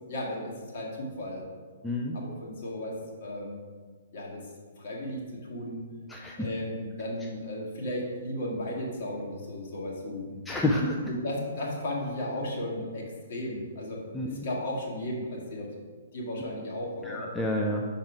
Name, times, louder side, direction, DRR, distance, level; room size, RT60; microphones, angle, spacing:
voice 1, 0.1-1.4 2.1-3.6 4.1-4.5 4.8-5.8 6.4-10.4 11.1-15.7 16.1-17.3, left 1 dB, 50° left, -3 dB, 1.6 m, -35 dB
voice 2, 1.8-2.2 6.1-6.4 10.5-11.0 14.1-14.4 17.0-17.9, left 1 dB, 5° left, -2 dB, 0.5 m, -29 dB
5.9 x 4.2 x 4.8 m, 1.5 s
figure-of-eight pair, 120°, 0 cm